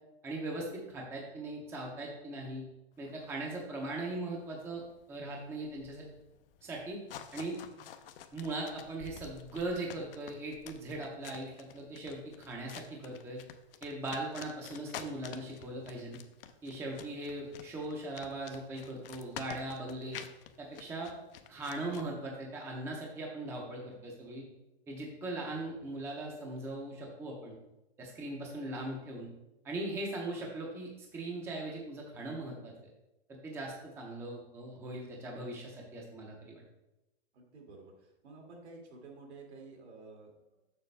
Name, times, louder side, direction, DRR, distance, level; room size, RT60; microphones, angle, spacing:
voice 1, 0.2-2.6 3.0-4.8 5.1-6.0 6.6-7.0 7.3-7.6 8.3-13.4 13.8-16.2 16.6-20.2 20.6-21.1 21.5-24.5 24.9-27.6 28.0-29.3 29.6-32.7 33.3-36.6, right 2 dB, 5° right, -1 dB, 0.7 m, -39 dB
sound 1, 2.9-22.0, left 9 dB, 55° left, 0.7 m, -50 dB
voice 2, 25.2-25.9 37.3-40.3, right 3 dB, 75° right, 0 dB, 2.4 m, -52 dB
6.8 x 6.1 x 3.3 m, 0.92 s
hypercardioid pair, 150°, 33 cm